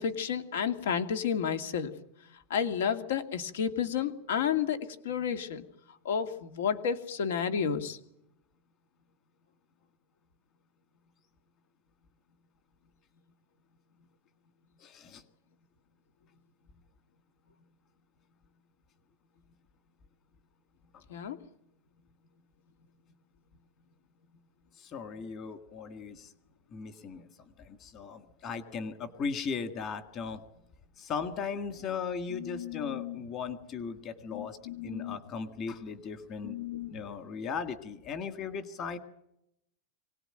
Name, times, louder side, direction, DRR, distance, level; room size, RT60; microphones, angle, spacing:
voice 1, 0.0-1.9 2.5-4.8 5.0-5.6 6.0-8.0 21.1-21.4 32.3-33.2 34.3-35.2 36.4-37.0, left 7 dB, 80° left, 9 dB, 2.3 m, -31 dB
voice 2, 14.8-15.2 24.8-26.3 26.7-27.3 27.6-30.4 31.0-34.6 34.8-36.6 36.9-39.0, left 5 dB, 25° left, 10 dB, 1.7 m, -37 dB
24.0 x 18.5 x 8.9 m, 0.80 s
supercardioid pair, 180°, 0 cm